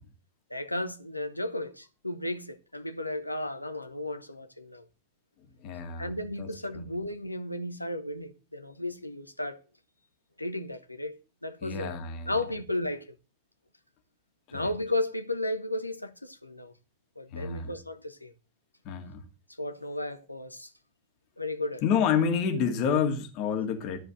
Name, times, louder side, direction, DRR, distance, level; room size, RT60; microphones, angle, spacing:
voice 1, 0.5-4.8 6.0-9.6 10.4-12.0 12.3-13.1 14.5-16.7 17.2-18.3 19.6-20.7 21.4-21.8, left 1 dB, 85° left, 1.1 m, -34 dB
voice 2, 5.6-6.1 6.4-6.5 6.7-6.8 11.6-12.3 14.5-14.7 17.3-17.7 18.8-19.2 21.8-24.0, left 7 dB, 40° left, 2.4 m, -28 dB
13.0 x 4.9 x 7.6 m
figure-of-eight pair, 90°, 0 cm